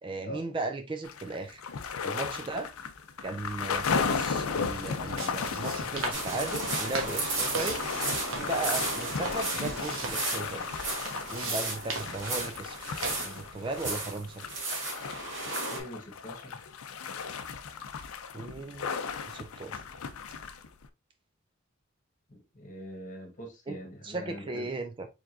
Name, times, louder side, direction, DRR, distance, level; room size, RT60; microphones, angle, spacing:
voice 1, 0.0-1.6 2.0-2.7 3.2-7.9 8.3-10.7 11.3-12.8 13.2-14.4 18.3-19.0 19.3-19.8 23.7-23.8 24.0-25.1, right 3 dB, 25° right, 0.3 m, -36 dB
sound 1, 1.0-20.9, left 5 dB, 85° left, 0.5 m, -35 dB
sound 2, 4.6-13.4, right 3 dB, 75° right, 1.2 m, -40 dB
sound 3, 6.1-15.8, right 2 dB, 55° right, 1.9 m, -34 dB
voice 2, 15.7-16.7 22.3-24.7, equal, 35° left, 1.2 m, -43 dB
4.8 x 3.7 x 2.5 m
head